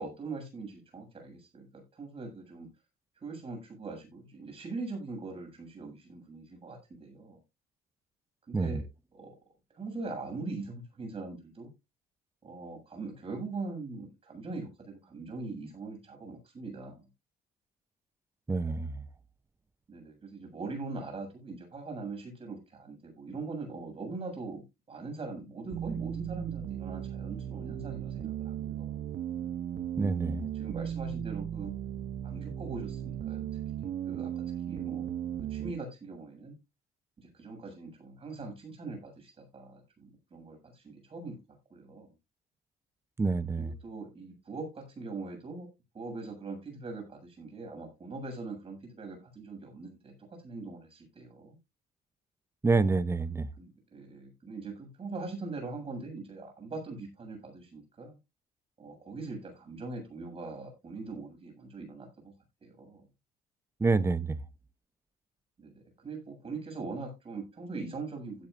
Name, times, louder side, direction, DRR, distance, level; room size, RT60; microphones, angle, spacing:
voice 1, 0.0-2.7 3.2-7.4 8.5-8.8 9.1-9.3 9.7-11.7 12.4-17.1 19.9-29.0 30.2-31.7 32.2-33.5 33.8-34.3 34.7-35.1 35.4-36.5 37.2-41.4 41.7-42.1 43.6-45.7 45.9-50.1 50.4-51.6 53.6-58.2 58.8-62.3 62.6-63.1 65.6-68.5, right 3 dB, 35° right, 7.5 m, -42 dB
voice 2, 18.5-18.9 30.0-30.4 43.2-43.7 52.6-53.5 63.8-64.4, right 3 dB, 15° right, 0.7 m, -27 dB
sound 1, 25.7-35.7, right 10 dB, 50° right, 0.7 m, -36 dB
16.0 x 8.5 x 2.6 m
cardioid pair, 110°, 17 cm